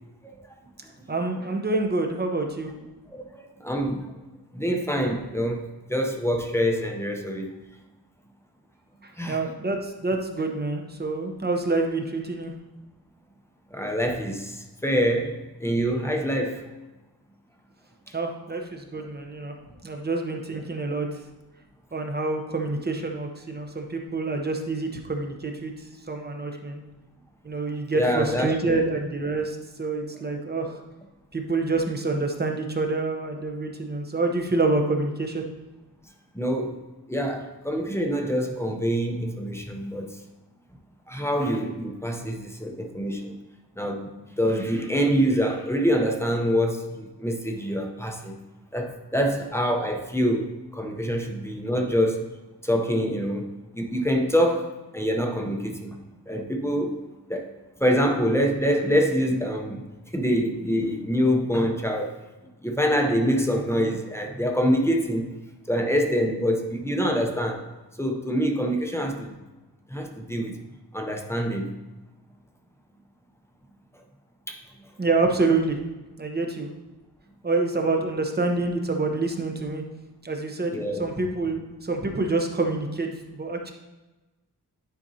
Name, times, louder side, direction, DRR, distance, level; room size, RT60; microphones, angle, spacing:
voice 1, 1.1-2.7 9.0-12.5 18.1-19.5 19.8-21.1 21.9-26.8 27.4-30.8 31.3-35.4 75.0-75.8 76.2-76.7 77.4-79.8 80.2-83.7, right 3 dB, 25° right, 3 dB, 0.8 m, -27 dB
voice 2, 3.1-4.1 4.5-7.5 9.2-9.4 13.7-15.3 15.6-16.6 18.1-18.2 27.9-28.5 36.3-36.8 37.1-40.1 41.1-43.4 43.8-44.1 44.4-48.4 48.7-52.2 52.6-53.4 53.7-56.0 56.3-57.0 57.3-57.5 57.8-59.8 60.1-62.2 62.6-65.3 65.7-67.7 68.0-69.4 69.9-70.6 70.9-71.7 74.5-74.6 80.7-81.1, equal, 5° left, 2 dB, 0.7 m, -25 dB
10.5 x 5.1 x 2.8 m, 1.1 s
wide cardioid pair, 145°, 40 cm